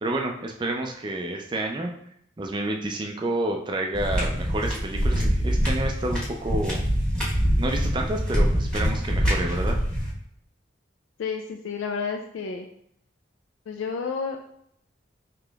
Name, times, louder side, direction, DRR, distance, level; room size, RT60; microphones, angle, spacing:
voice 1, 0.0-1.9 2.4-6.8 7.6-9.8, right 1 dB, 25° right, 2 dB, 0.3 m, -29 dB
sound 1, 3.9-10.1, equal, 5° left, 1.1 m, -24 dB
voice 2, 11.2-12.7 13.7-14.4, left 5 dB, 90° left, 3 dB, 0.3 m, -30 dB
4.9 x 2.9 x 2.3 m, 0.71 s
head